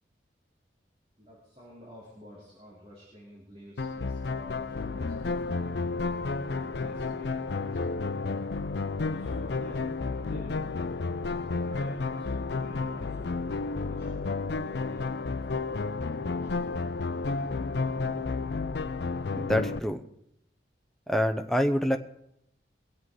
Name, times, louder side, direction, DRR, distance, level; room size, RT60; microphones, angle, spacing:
voice 1, 1.2-5.9 6.5-8.0 9.0-10.9 11.5-16.5, equal, 35° right, -7 dB, 4.8 m, -51 dB
sound 1, 3.8-19.8, left 3 dB, 70° left, 0.6 m, -31 dB
voice 2, 19.3-20.0 21.1-22.0, equal, ahead, 5 dB, 0.7 m, -26 dB
23.5 x 8.2 x 4.8 m, 0.76 s
head